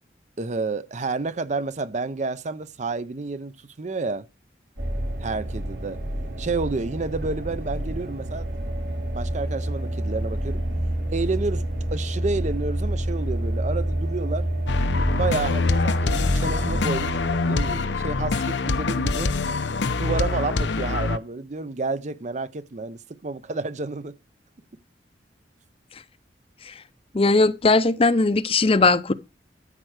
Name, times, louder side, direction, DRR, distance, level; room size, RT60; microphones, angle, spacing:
voice 1, 0.4-4.3 5.2-6.0 6.4-8.5 9.1-10.6 11.1-11.6 11.9-14.5 15.1-17.2 17.5-19.3 20.0-24.2, right 3 dB, 40° right, 0.6 m, -30 dB
sound 1, 4.8-17.7, right 1 dB, 90° right, 4.4 m, -28 dB
sound 2, 14.7-21.2, left 3 dB, 80° left, 0.7 m, -24 dB
voice 2, 27.1-29.1, left 3 dB, 35° left, 0.6 m, -19 dB
13.5 x 4.5 x 6.4 m
head